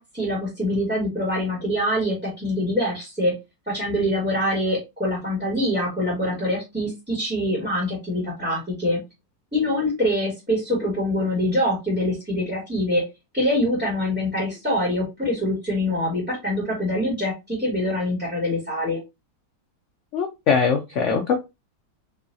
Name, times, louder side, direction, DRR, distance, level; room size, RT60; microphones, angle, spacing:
voice 1, 0.0-3.3 3.7-9.0 9.5-13.0 13.3-19.0, left 1 dB, 5° right, -5 dB, 1.4 m, -24 dB
voice 2, 20.1-21.4, left 6 dB, 85° left, 5 dB, 0.6 m, -21 dB
3.9 x 2.7 x 2.6 m, 0.24 s
omnidirectional pair, 1.9 m